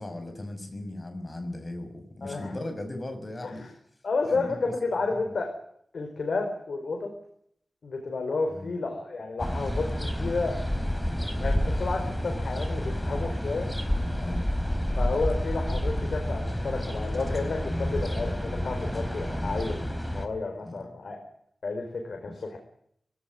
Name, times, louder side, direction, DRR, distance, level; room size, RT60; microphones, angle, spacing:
voice 1, 0.0-3.7 4.3-4.6 8.5-8.7 11.0-11.2 14.1-14.5 16.8-17.1 19.4-19.6 20.6-20.7 22.2-22.3, left 1 dB, 35° left, 7 dB, 6.3 m, -38 dB
voice 2, 2.2-2.5 3.4-3.7 4.0-5.5 5.9-7.1 7.8-10.5 11.4-13.7 15.0-19.8 20.1-21.2 21.6-22.6, left 3 dB, 90° left, 3 dB, 4.9 m, -31 dB
sound 1, 9.4-20.3, left 1 dB, 10° left, 3.6 m, -29 dB
22.0 x 17.5 x 9.8 m, 0.69 s
wide cardioid pair, 110°, 0 cm